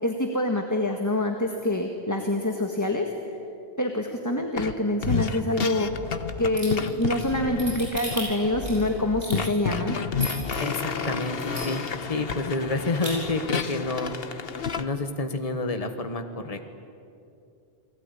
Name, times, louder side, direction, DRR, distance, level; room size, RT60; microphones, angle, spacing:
voice 1, 0.0-3.4 3.8-5.9 6.4-10.0, left 1 dB, 15° left, 3 dB, 1.7 m, -26 dB
sound 1, 4.6-4.7 5.0-14.8, left 5 dB, 70° left, 1.4 m, -30 dB
sound 2, 6.5-10.6 11.0-11.1 11.4-12.0 12.4-12.5 12.7-13.1, right 1 dB, 40° right, 8.2 m, -35 dB
voice 2, 10.6-11.8 12.1-14.1 14.8-16.7, left 2 dB, 35° left, 6 dB, 1.6 m, -29 dB
29.5 x 20.0 x 10.0 m, 2.7 s
omnidirectional pair, 1.1 m